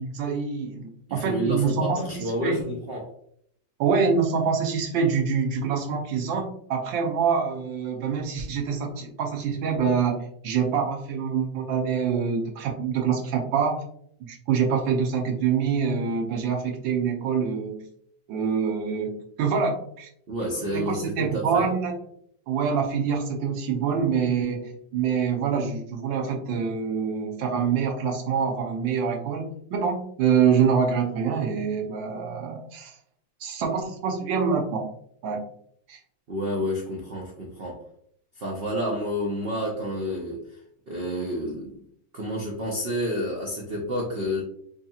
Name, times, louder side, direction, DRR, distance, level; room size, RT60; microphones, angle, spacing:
voice 1, 0.0-2.6 3.8-13.8 14.3-17.8 18.3-20.1 20.7-22.0 22.5-33.0 33.4-34.9 35.2-35.4 35.9-36.0, right 6 dB, 80° right, 2 dB, 1.5 m, -25 dB
voice 2, 1.1-3.1 20.3-21.7 36.3-37.8 38.3-40.6 40.9-41.8 42.1-44.4, equal, 65° right, -2 dB, 0.5 m, -29 dB
5.1 x 2.8 x 2.3 m, 0.67 s
omnidirectional pair, 2.0 m